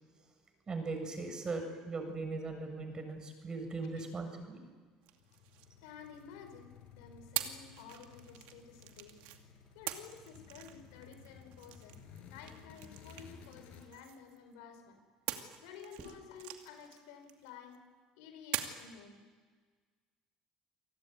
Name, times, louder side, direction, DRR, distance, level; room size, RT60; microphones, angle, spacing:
voice 1, 0.7-4.6, right 3 dB, 30° right, 6 dB, 7.4 m, -39 dB
sound 1, 5.0-6.5 7.3-9.4 9.9-14.5 15.3-17.8 18.5-19.0, right 13 dB, 80° right, 2.4 m, -44 dB
sound 2, 5.1-13.9, left 6 dB, 70° left, 5.4 m, -56 dB
voice 2, 5.8-9.3 9.7-15.0 15.6-17.9 18.2-19.2, left 7 dB, 85° left, 7 dB, 4.6 m, -53 dB
28.5 x 18.5 x 9.5 m, 1.5 s
supercardioid pair, 85°, 2 cm